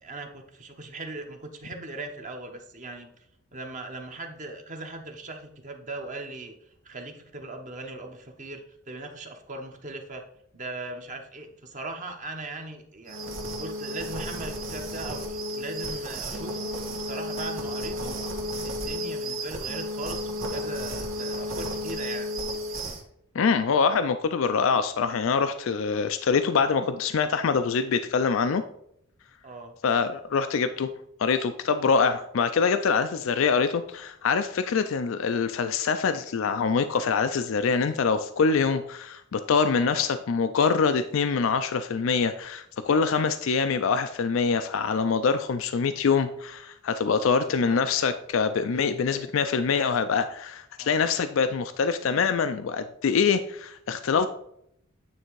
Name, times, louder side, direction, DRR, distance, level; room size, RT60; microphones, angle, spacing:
voice 1, 0.0-3.1 3.5-6.5 6.8-10.2 10.5-13.2 13.6-18.2 18.6-22.4 29.4-29.7 39.8-40.0 47.4-47.8 48.7-49.3 50.8-50.9, right 2 dB, 40° right, 4 dB, 0.9 m, -39 dB
sound 1, 13.1-23.0, equal, 80° right, 1.5 m, -33 dB
voice 2, 23.3-28.6 29.8-30.9 31.2-54.3, left 5 dB, 70° left, 10 dB, 0.4 m, -24 dB
9.1 x 3.4 x 4.6 m, 0.72 s
head